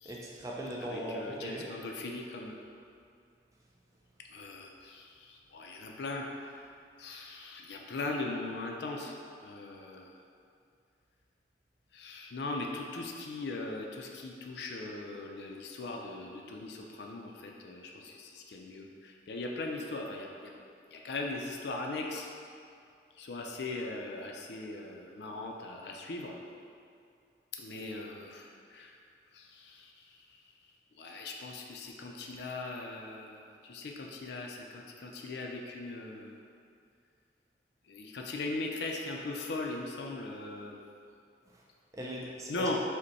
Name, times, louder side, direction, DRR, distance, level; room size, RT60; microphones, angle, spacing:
voice 1, 0.0-1.7 41.5-41.6 41.9-42.7, equal, 20° right, -3 dB, 0.4 m, -39 dB
voice 2, 0.8-2.6 4.3-6.6 7.0-10.1 11.9-20.5 20.9-22.3 23.2-26.4 27.6-29.0 29.3-30.1 31.0-36.4 37.9-40.8 42.5-42.8, left 2 dB, 70° left, 0 dB, 0.4 m, -39 dB
5.2 x 2.2 x 4.0 m, 2.4 s
head